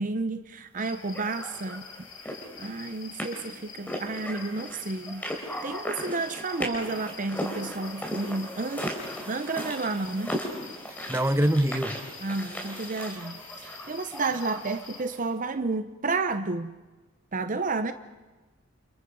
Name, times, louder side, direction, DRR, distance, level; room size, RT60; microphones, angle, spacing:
voice 1, 0.0-1.8 2.6-5.2 5.6-8.9 9.3-10.3 12.2-16.7 17.3-17.9, right 3 dB, 40° right, 0.8 m, -31 dB
sound 1, 0.8-15.1, left 6 dB, 70° left, 3.5 m, -47 dB
sound 2, 1.1-15.2, equal, 10° left, 4.8 m, -37 dB
voice 2, 11.1-12.0, right 1 dB, 15° right, 1.2 m, -23 dB
30.0 x 29.0 x 5.4 m
head